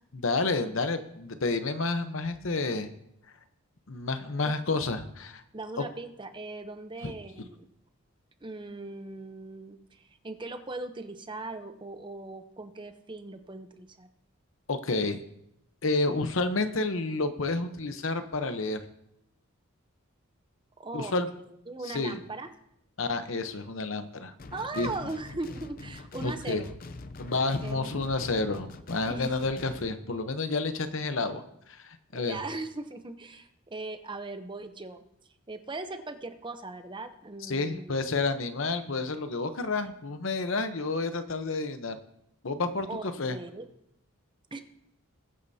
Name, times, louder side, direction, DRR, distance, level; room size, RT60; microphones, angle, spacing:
voice 1, 0.1-2.9 3.9-5.4 14.7-15.2 15.8-18.8 20.9-21.3 21.9-22.2 23.0-24.3 24.8-24.9 26.2-26.6 27.2-31.4 31.7-32.4 37.5-42.0 42.4-43.4, left 3 dB, 65° left, 9 dB, 0.9 m, -30 dB
voice 2, 5.5-7.7 8.4-14.1 20.8-21.1 21.5-22.5 24.5-26.7 27.6-28.2 29.1-29.6 32.1-35.0 35.5-38.2 42.9-43.0 43.3-43.7 44.5-44.6, right 2 dB, 20° right, 8 dB, 0.7 m, -39 dB
sound 1, 24.4-29.9, left 2 dB, 40° left, 0.6 m, -44 dB
21.0 x 8.8 x 2.8 m, 0.78 s
head